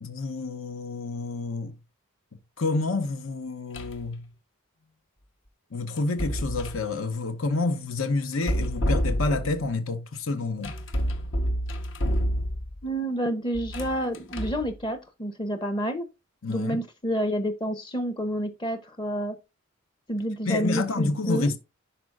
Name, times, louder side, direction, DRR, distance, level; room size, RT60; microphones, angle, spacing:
voice 1, 0.0-1.7 2.6-4.3 5.7-10.7 16.4-16.8 20.5-21.6, left 3 dB, 80° left, 0.9 m, -28 dB
sound 1, 3.7-4.1 6.0-6.9 8.3-9.6 10.6-12.8 13.5-14.7, equal, 65° left, 1.1 m, -28 dB
voice 2, 12.8-16.1 16.5-19.4 20.1-21.5, equal, 20° left, 0.7 m, -29 dB
11.0 x 4.3 x 2.5 m
head